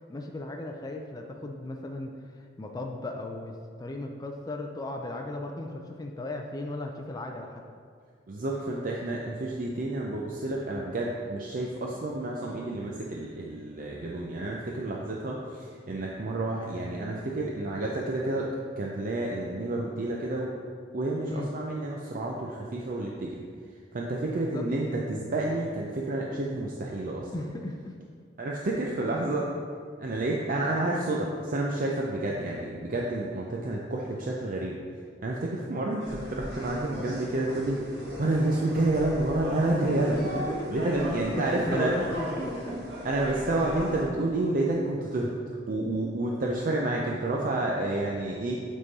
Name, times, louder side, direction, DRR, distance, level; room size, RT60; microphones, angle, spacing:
voice 1, 0.1-7.6 21.2-21.5 24.3-24.7 27.3-27.9 40.1-40.8 41.3-42.6, left 2 dB, 20° left, 2 dB, 0.4 m, -36 dB
voice 2, 8.3-18.5 18.8-20.6 20.9-23.4 23.9-27.3 28.4-29.5 30.0-34.8 35.2-40.2 40.7-41.9 43.0-45.3 45.7-48.6, right 2 dB, 50° right, -2 dB, 0.5 m, -29 dB
sound 1, 36.0-44.0, equal, 75° right, 1.7 m, -37 dB
8.2 x 3.7 x 4.0 m, 2.1 s
head